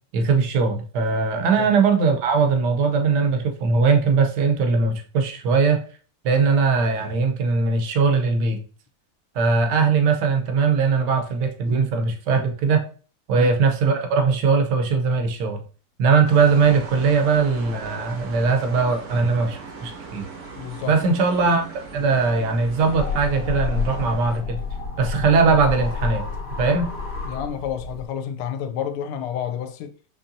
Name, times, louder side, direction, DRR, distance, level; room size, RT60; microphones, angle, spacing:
voice 1, 0.1-5.8 6.2-8.6 9.3-12.8 13.3-15.6 16.0-20.2 20.9-21.6 21.9-24.6 25.0-26.2 26.6-26.9, right 4 dB, 65° right, 1.2 m, -20 dB
sound 1, 16.2-24.4, right 4 dB, 85° right, 2.1 m, -39 dB
voice 2, 20.6-21.0 27.2-29.9, left 9 dB, 80° left, 1.5 m, -30 dB
sound 2, 22.6-28.0, left 4 dB, 40° left, 1.0 m, -30 dB
5.6 x 3.3 x 2.6 m
omnidirectional pair, 2.4 m